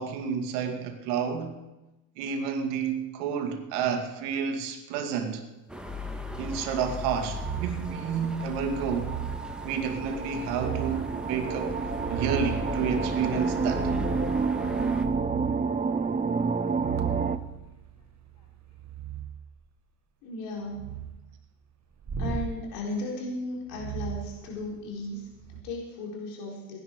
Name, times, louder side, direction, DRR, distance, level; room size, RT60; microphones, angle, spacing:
voice 1, 0.0-1.6 2.2-5.4 6.4-9.2 9.6-11.8 12.1-13.9, right 6 dB, 75° right, 2.3 m, -30 dB
sound 1, 5.7-15.1, left 3 dB, ahead, 1.9 m, -38 dB
sound 2, 7.1-17.4, right 5 dB, 15° right, 0.8 m, -30 dB
sound 3, 7.4-7.9 8.7-9.5 10.4-11.1 11.7-12.7 13.7-14.3 14.7-15.6 16.6-19.3 20.6-21.2 22.0-22.5 23.7-24.9 25.4-25.6, right 8 dB, 35° right, 1.9 m, -36 dB
voice 2, 20.2-21.0 22.2-26.8, left 1 dB, 75° left, 4.4 m, -36 dB
18.5 x 11.0 x 4.8 m
hypercardioid pair, 75°, 48 cm